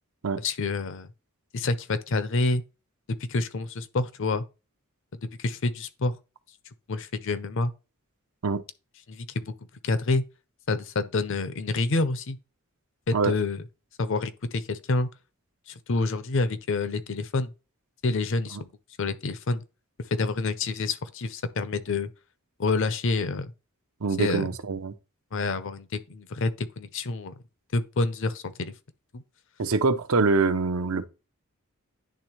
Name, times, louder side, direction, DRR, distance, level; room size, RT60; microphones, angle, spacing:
voice 1, 0.4-1.1 1.5-2.6 3.3-4.4 5.2-6.1 6.9-7.7 9.1-9.5 9.8-10.2 10.7-12.4 13.1-13.6 14.0-15.1 15.7-17.5 18.0-18.7 19.0-19.6 20.1-22.1 22.6-23.5 24.2-24.5 25.3-27.3 27.7-28.7 29.1-29.2, left 3 dB, 60° left, 0.6 m, -28 dB
voice 2, 24.0-24.9 29.6-31.1, right 4 dB, 75° right, 0.7 m, -24 dB
10.5 x 3.5 x 3.0 m
head